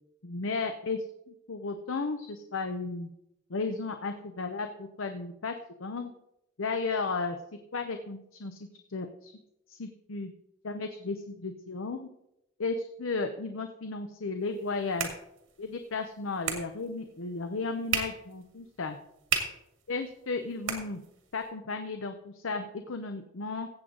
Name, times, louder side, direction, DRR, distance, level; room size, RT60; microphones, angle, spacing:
voice 1, 0.2-1.0 1.3-3.1 3.5-6.1 6.6-7.4 7.7-8.6 8.9-9.3 9.7-10.3 10.6-12.0 12.6-15.1 15.6-19.0 19.9-21.0 21.3-23.7, left 3 dB, 80° left, 7 dB, 0.7 m, -34 dB
sound 1, 14.4-21.5, right 6 dB, 75° right, 2.0 m, -38 dB
15.5 x 7.8 x 3.9 m, 0.83 s
head